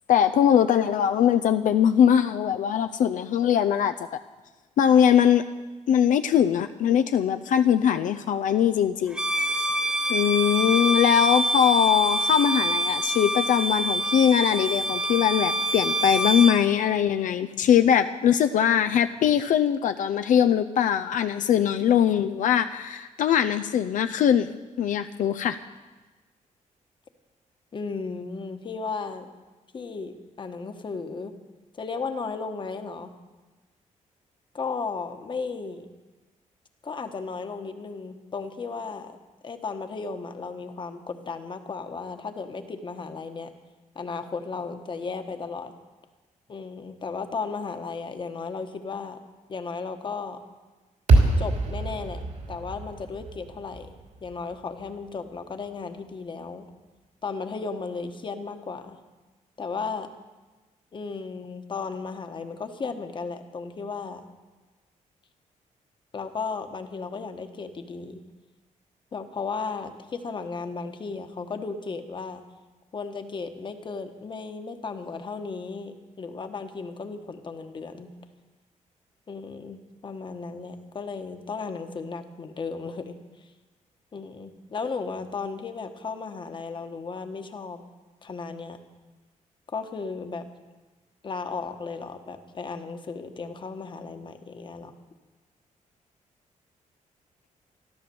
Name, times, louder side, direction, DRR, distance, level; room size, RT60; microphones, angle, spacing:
voice 1, 0.1-3.9 4.8-5.4 5.9-9.2 9.5-9.7 10.1-25.6, left 9 dB, 80° left, 8 dB, 0.6 m, -21 dB
Bowed string instrument, 9.1-16.6, right 1 dB, 5° right, 1.4 m, -26 dB
voice 2, 27.7-29.3 29.7-31.3 31.7-33.1 34.5-35.9 36.8-39.1 39.4-43.5 43.9-45.7 46.5-49.2 49.5-50.4 51.4-52.2 52.5-53.9 54.2-56.7 57.2-59.0 59.6-60.1 60.9-64.2 66.1-68.2 69.1-72.4 72.9-78.1 79.3-83.2 84.1-87.8 88.2-88.8 89.7-90.5 91.2-95.0, left 4 dB, 35° left, 7 dB, 1.3 m, -35 dB
sound 1, 51.1-55.4, right 2 dB, 70° right, 3.0 m, -25 dB
13.5 x 13.0 x 7.0 m, 1.2 s
cardioid pair, 130°, 13 cm